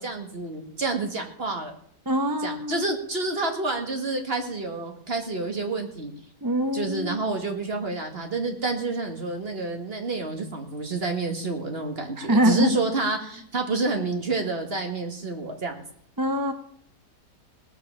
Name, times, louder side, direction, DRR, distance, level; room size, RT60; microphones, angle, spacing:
voice 1, 0.0-1.7 2.4-6.1 6.7-15.7, right 3 dB, 35° right, 4 dB, 2.0 m, -29 dB
voice 2, 2.1-2.8 6.4-7.2 12.2-12.8 16.2-16.5, equal, 20° right, 8 dB, 0.6 m, -24 dB
18.0 x 7.2 x 7.0 m, 0.63 s
omnidirectional pair, 1.8 m